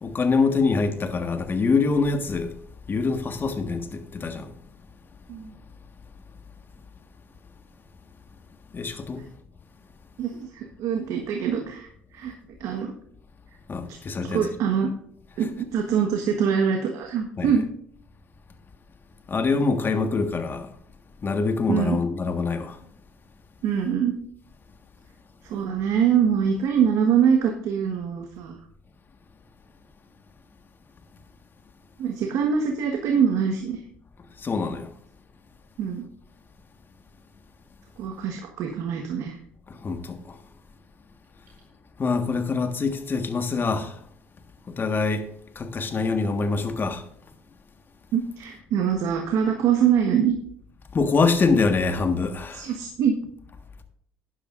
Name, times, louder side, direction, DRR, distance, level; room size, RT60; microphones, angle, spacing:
voice 1, 0.0-2.5 2.9-4.5 8.7-9.2 13.7-14.4 17.4-17.5 19.3-20.7 21.2-22.7 34.4-34.9 39.8-40.3 42.0-43.9 44.8-45.2 45.5-47.0 50.9-52.7, left 4 dB, 35° left, 1.6 m, -24 dB
voice 2, 10.2-12.3 12.6-12.9 13.9-14.0 14.3-14.9 15.4-17.6 21.7-22.0 23.6-24.2 25.4-28.6 32.0-33.8 35.8-36.0 38.0-39.4 48.1-50.3 52.5-53.1, right 7 dB, 70° right, 1.4 m, -24 dB
13.0 x 10.0 x 2.6 m
supercardioid pair, 70°, 6 cm